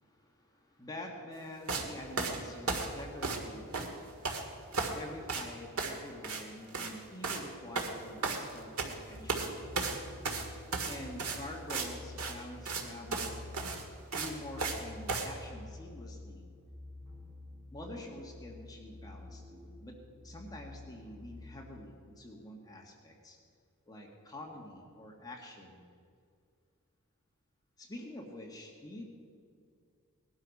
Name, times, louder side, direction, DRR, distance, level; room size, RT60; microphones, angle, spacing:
voice 1, 0.0-9.9 10.9-13.5 14.1-16.5 17.7-20.0 20.2-23.4 23.9-25.8 27.8-29.0, left 1 dB, 15° left, 0 dB, 1.8 m, -47 dB
sound 1, 1.7-1.9 2.2-3.5 3.7-4.4 4.7-5.0 5.3-5.5 5.8-6.0 6.2-6.4 6.7-6.9 7.2-7.4 7.8-8.9 9.3-9.5 9.8-11.9 12.2-12.3 12.7-12.8 13.1-13.3 13.5-14.8 15.1-15.3, right 4 dB, 75° right, 1.9 m, -34 dB
sound 2, 9.1-21.8, left 2 dB, 15° right, 2.7 m, -49 dB
19.0 x 12.0 x 5.5 m, 2.2 s
head